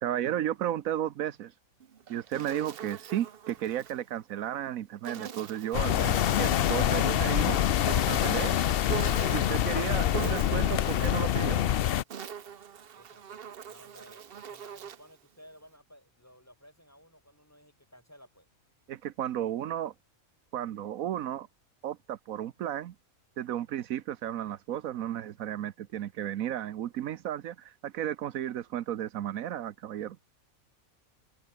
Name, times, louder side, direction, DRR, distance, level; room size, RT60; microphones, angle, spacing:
voice 1, 0.0-1.5 2.1-7.6 7.9-8.6 9.3-11.6 18.9-19.9 20.5-21.5 21.8-22.9 23.4-30.2, right 11 dB, 80° right, 1.2 m, -33 dB
Insect, 1.8-4.0 5.0-7.1 8.9-9.7 10.1-11.3 11.9-15.1, right 8 dB, 50° right, 1.0 m, -42 dB
sound 1, 5.7-12.0, left 11 dB, 60° left, 0.7 m, -26 dB
voice 2, 13.0-18.5, equal, 10° left, 6.2 m, -56 dB
omnidirectional pair, 1.4 m